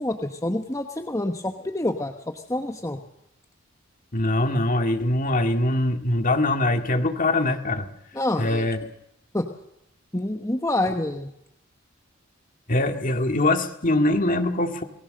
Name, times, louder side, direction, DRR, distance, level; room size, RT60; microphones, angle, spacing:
voice 1, 0.0-3.0 8.1-8.7 9.3-9.5 10.1-11.3, left 1 dB, 15° left, 5 dB, 1.1 m, -27 dB
voice 2, 4.1-7.9 8.4-8.8 12.7-14.8, left 1 dB, 40° left, 5 dB, 2.1 m, -23 dB
28.0 x 19.5 x 6.6 m, 0.82 s
head